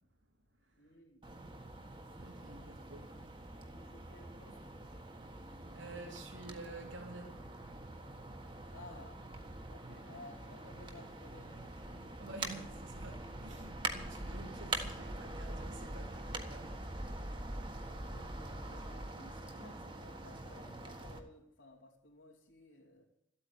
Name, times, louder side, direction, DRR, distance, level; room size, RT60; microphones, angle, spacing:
voice 1, 0.8-1.2 3.7-4.7 8.7-9.2 9.7-12.6 18.1-23.0, left 2 dB, 80° left, 3.2 m, -56 dB
sound 1, 1.2-21.2, right 2 dB, 25° right, 1.5 m, -44 dB
voice 2, 2.2-3.2 5.7-7.5 12.2-16.8, right 2 dB, 85° right, 3.2 m, -50 dB
14.0 x 8.7 x 9.5 m
head